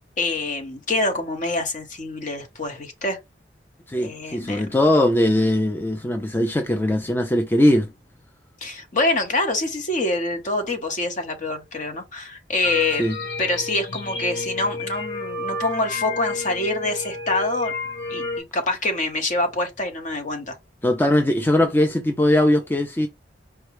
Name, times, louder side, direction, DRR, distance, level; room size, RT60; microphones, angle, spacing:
voice 1, 0.2-3.2 4.0-4.7 8.6-13.0 13.4-17.7 18.1-20.6, left 2 dB, 45° left, 1.1 m, -25 dB
voice 2, 3.9-7.9 13.0-13.2 20.8-23.1, left 1 dB, 10° left, 0.4 m, -20 dB
sound 1, 12.6-18.4, left 2 dB, 85° left, 1.4 m, -31 dB
4.7 x 2.2 x 3.1 m
head